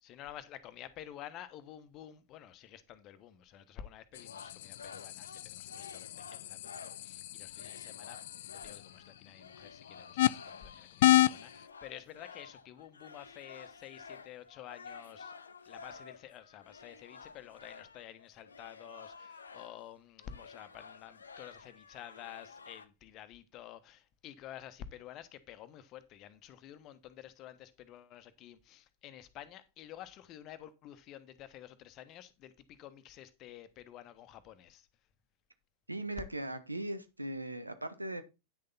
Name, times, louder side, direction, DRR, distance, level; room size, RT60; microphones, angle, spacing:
voice 1, 0.0-15.3 15.6-34.9, left 11 dB, 35° left, 1.1 m, -51 dB
sound 1, 4.1-7.1 7.5-19.9 20.2-22.9, left 5 dB, 75° left, 0.8 m, -52 dB
sound 2, 4.1-11.7, left 15 dB, 55° left, 0.4 m, -33 dB
voice 2, 35.9-38.2, right 1 dB, 85° right, 1.1 m, -39 dB
9.7 x 6.6 x 4.0 m
figure-of-eight pair, 90°, 0 cm